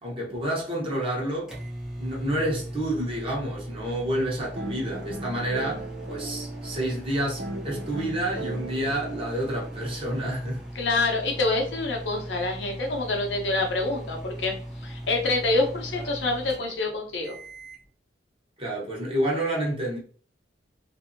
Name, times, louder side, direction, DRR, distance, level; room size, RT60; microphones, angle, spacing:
voice 1, 0.0-1.5 2.0-10.6 18.6-20.0, right 1 dB, 30° right, 0.9 m, -29 dB
sound 1, 1.3-17.9, right 1 dB, 5° right, 0.5 m, -39 dB
sound 2, 4.5-10.2, right 3 dB, 65° right, 0.4 m, -38 dB
voice 2, 10.7-14.5 14.8-17.4, left 2 dB, 75° left, 0.7 m, -26 dB
2.6 x 2.6 x 2.5 m
head